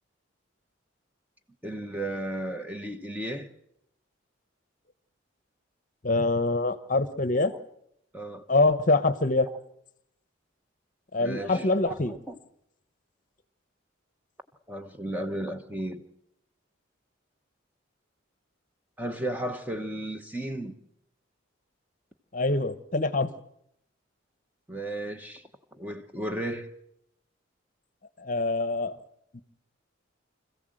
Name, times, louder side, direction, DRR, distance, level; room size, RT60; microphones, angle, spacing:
voice 1, 1.6-3.5 7.5-7.6 8.1-8.5 9.5-9.6 11.2-12.4 14.7-16.0 19.0-20.8 24.7-26.7, right 1 dB, 10° right, 1.0 m, -34 dB
voice 2, 6.0-7.5 8.5-9.5 11.1-12.1 22.3-23.3 28.2-29.0 29.3-29.4, left 2 dB, 40° left, 0.9 m, -24 dB
25.5 x 15.0 x 7.8 m
head